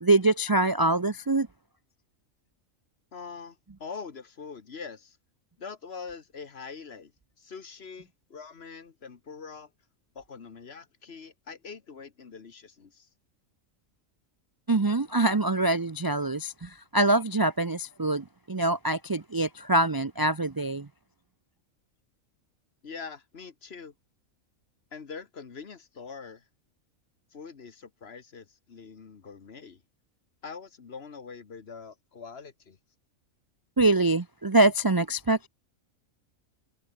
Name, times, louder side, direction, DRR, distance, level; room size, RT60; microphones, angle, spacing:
voice 1, 0.0-1.5 14.7-20.9 33.8-35.5, right 2 dB, 25° right, 0.5 m, -24 dB
voice 2, 3.1-5.2 5.6-7.1 7.4-9.7 10.1-13.1 22.8-23.9 24.9-26.4 27.3-29.8 30.4-32.8, left 5 dB, 50° left, 1.5 m, -43 dB
omnidirectional pair, 1.4 m